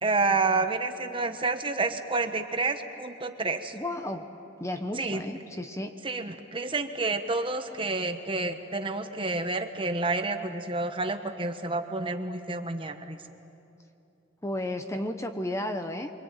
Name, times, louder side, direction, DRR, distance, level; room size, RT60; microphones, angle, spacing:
voice 1, 0.0-3.7 5.0-5.2 6.0-13.2, right 3 dB, 25° right, 7 dB, 1.2 m, -29 dB
voice 2, 3.7-4.2 4.6-5.9 14.4-16.1, left 1 dB, 15° left, 7 dB, 0.9 m, -33 dB
24.5 x 24.5 x 9.1 m, 2.9 s
head